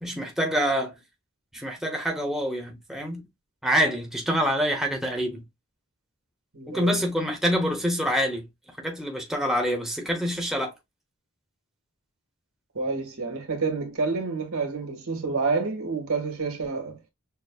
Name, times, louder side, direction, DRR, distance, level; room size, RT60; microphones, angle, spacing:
voice 1, 0.0-1.0 1.5-3.2 3.6-5.4 6.7-8.5 8.8-10.7, equal, ahead, 0.9 m, -26 dB
voice 2, 6.5-7.0 12.7-17.0, right 4 dB, 75° right, 1.8 m, -28 dB
6.6 x 2.3 x 2.3 m
head